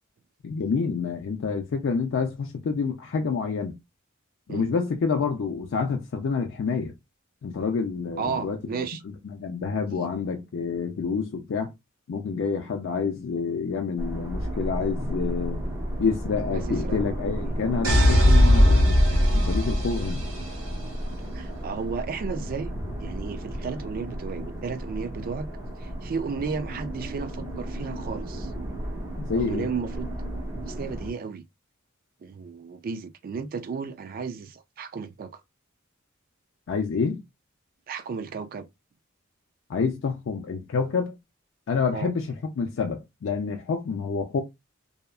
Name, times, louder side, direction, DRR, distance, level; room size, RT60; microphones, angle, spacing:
voice 1, 0.4-3.8 4.5-6.9 7.4-8.9 9.3-11.7 12.1-15.6 16.0-19.0 19.3-20.3 29.2-29.7 36.7-37.2 39.7-41.2 41.7-44.4, left 5 dB, 60° left, 0.4 m, -28 dB
voice 2, 8.2-9.0 9.9-10.1 16.5-17.0 17.4-17.5 21.3-22.7 23.0-25.5 25.8-28.5 29.3-30.1 30.7-31.4 32.2-35.4 37.9-38.7 41.9-42.1, right 5 dB, 45° right, 0.3 m, -34 dB
sound 1, 14.0-31.1, right 1 dB, 20° right, 0.9 m, -33 dB
sound 2, 17.8-20.7, equal, 75° right, 1.4 m, -19 dB
2.7 x 2.2 x 2.3 m
head